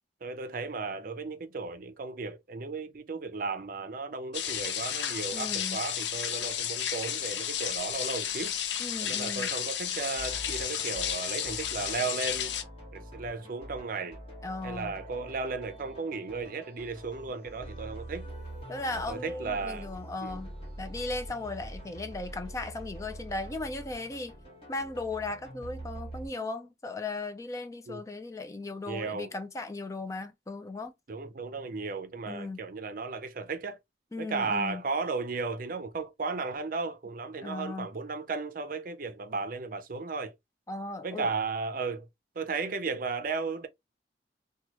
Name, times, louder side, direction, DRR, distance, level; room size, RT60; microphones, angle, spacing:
voice 1, 0.2-8.5 9.0-12.6 12.9-14.2 14.6-18.3 18.9-19.9 20.2-20.4 27.9-28.0 28.9-29.3 31.1-33.8 34.2-40.3 41.0-42.1 42.4-43.7, right 4 dB, 50° right, 0.5 m, -35 dB
sound 1, 4.3-12.6, left 9 dB, 80° left, 0.5 m, -32 dB
voice 2, 5.3-5.8 8.8-9.5 14.4-14.9 18.7-20.5 20.8-24.3 24.7-30.9 32.3-32.6 34.1-34.8 37.4-37.9 40.7-41.3, left 2 dB, 20° left, 0.3 m, -37 dB
sound 2, 10.2-26.3, right 1 dB, 35° left, 1.6 m, -45 dB
3.0 x 2.3 x 2.8 m
head